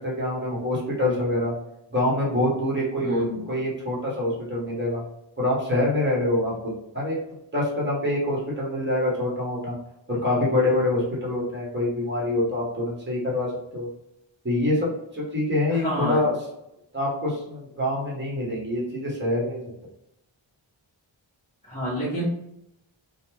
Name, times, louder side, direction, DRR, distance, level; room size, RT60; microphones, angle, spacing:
voice 1, 0.0-1.5 1.9-5.0 5.4-7.2 7.5-9.7 10.1-13.9 14.4-16.3 16.9-19.7, left 1 dB, 20° right, -5 dB, 1.3 m, -25 dB
voice 2, 3.0-3.4 15.7-16.2 21.7-22.2, equal, 15° left, -11 dB, 1.0 m, -29 dB
2.5 x 2.3 x 3.1 m, 0.84 s
wide cardioid pair, 65°, 49 cm